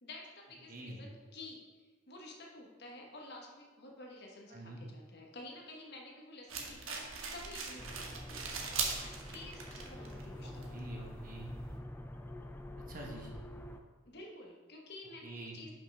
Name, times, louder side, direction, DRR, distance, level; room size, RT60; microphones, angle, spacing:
voice 1, 0.0-8.7 9.3-10.9 14.1-15.8, left 2 dB, 55° left, 0 dB, 1.2 m, -51 dB
voice 2, 0.7-1.0 4.5-4.8 10.4-11.5 12.9-13.3 15.2-15.6, right 1 dB, 40° right, -1 dB, 1.2 m, -46 dB
sound 1, 6.5-11.8, right 4 dB, 85° right, 1.1 m, -41 dB
sound 2, 7.8-13.8, left 1 dB, 10° left, 0.4 m, -47 dB
5.7 x 5.5 x 5.4 m, 1.4 s
head